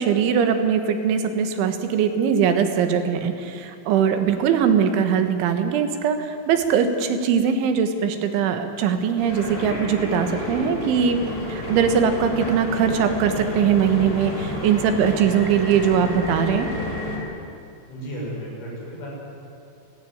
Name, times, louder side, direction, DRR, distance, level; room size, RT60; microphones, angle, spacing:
voice 1, 0.0-11.2 11.5-16.7, right 7 dB, 90° right, 7 dB, 3.8 m, -21 dB
sound 1, 9.2-17.2, left 1 dB, 20° left, 5.1 m, -30 dB
voice 2, 17.9-19.1, equal, 85° left, -4 dB, 9.1 m, -33 dB
30.0 x 10.5 x 9.4 m, 2.5 s
omnidirectional pair, 5.3 m